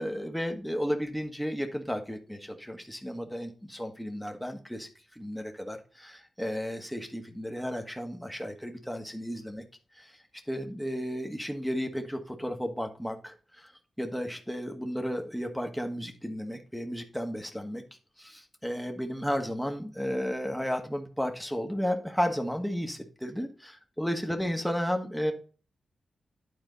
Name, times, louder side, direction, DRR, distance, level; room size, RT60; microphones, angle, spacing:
voice 1, 0.0-9.6 9.9-10.2 10.5-13.7 14.0-17.8 18.2-25.3, equal, ahead, 4 dB, 1.3 m, -33 dB
9.8 x 4.4 x 4.0 m, 0.39 s
cardioid pair, 65°, 0 cm